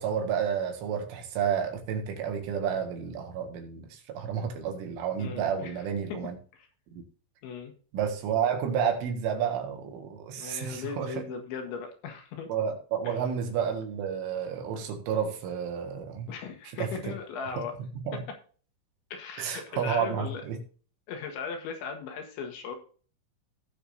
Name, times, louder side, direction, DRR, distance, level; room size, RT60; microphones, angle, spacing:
voice 1, 0.0-6.4 6.9-7.0 7.9-11.3 12.5-16.3 16.7-17.1 17.8-18.2 19.4-20.6, right 7 dB, 75° right, 4.2 m, -31 dB
voice 2, 5.2-5.8 6.1-6.2 6.5-6.7 7.4-7.7 10.4-12.5 13.1-13.2 16.3-17.7 18.1-18.4 19.1-20.4 21.1-22.8, left 6 dB, 70° left, 3.9 m, -38 dB
18.0 x 6.8 x 2.7 m
omnidirectional pair, 5.8 m